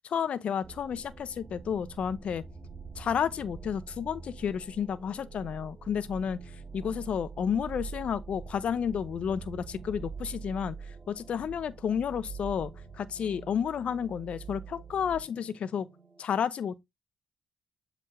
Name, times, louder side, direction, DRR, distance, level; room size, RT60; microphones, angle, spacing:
voice 1, 0.0-2.4 3.0-6.4 6.7-10.7 11.1-15.9 16.2-16.8, left 8 dB, 60° left, 0.8 m, -31 dB
sound 1, 0.6-16.2, right 5 dB, 35° right, 2.1 m, -45 dB
7.7 x 3.6 x 3.6 m
hypercardioid pair, 50°, 2 cm